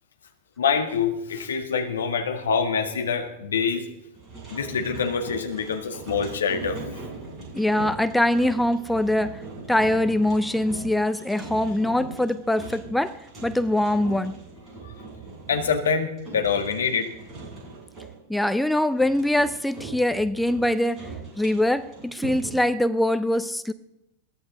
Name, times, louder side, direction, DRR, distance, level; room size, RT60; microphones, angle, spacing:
voice 1, 0.6-3.9 4.5-6.8 14.8-15.0 15.5-17.1, left 6 dB, 65° left, 6 dB, 1.9 m, -25 dB
sound 1, 4.1-18.2 18.9-22.6, right 3 dB, 20° right, 7.9 m, -40 dB
voice 2, 7.5-9.4 9.7-14.3 18.3-21.1 21.4-23.7, left 1 dB, 5° left, 12 dB, 0.7 m, -23 dB
22.0 x 16.0 x 3.9 m, 0.87 s
figure-of-eight pair, 90°, 0 cm